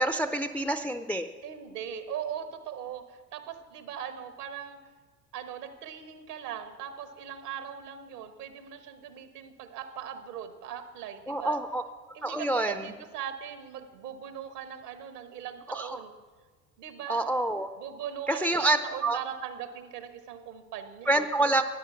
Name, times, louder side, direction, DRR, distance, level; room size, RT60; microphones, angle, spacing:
voice 1, 0.0-1.3 11.3-11.8 12.2-12.9 15.7-16.0 17.1-17.7 18.3-19.2 21.1-21.6, right 2 dB, 5° left, 10 dB, 0.4 m, -27 dB
voice 2, 1.4-4.8 5.3-11.6 12.1-16.1 16.8-17.3 17.8-21.3, right 9 dB, 70° right, 10 dB, 1.5 m, -40 dB
13.0 x 9.8 x 5.9 m, 1.4 s
figure-of-eight pair, 70°, 48 cm